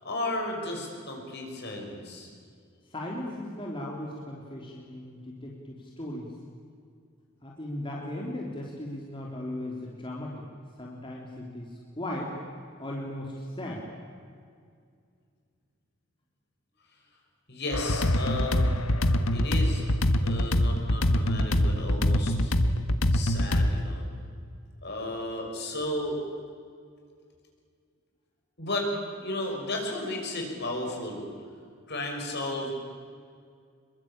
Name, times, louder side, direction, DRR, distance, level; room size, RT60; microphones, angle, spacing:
voice 1, 0.0-2.3 17.5-18.7 19.3-19.8 20.2-22.5 23.1-24.0 24.8-26.3 28.6-28.9 29.2-31.3 31.9-32.7, left 1 dB, 55° left, 1 dB, 6.3 m, -34 dB
voice 2, 2.9-6.3 7.4-10.4 10.8-12.4 12.8-13.9, left 1 dB, 25° left, -2 dB, 3.4 m, -37 dB
sound 1, 17.7-23.7, left 1 dB, 80° left, 1.5 m, -24 dB
26.0 x 22.5 x 8.8 m, 2.2 s
head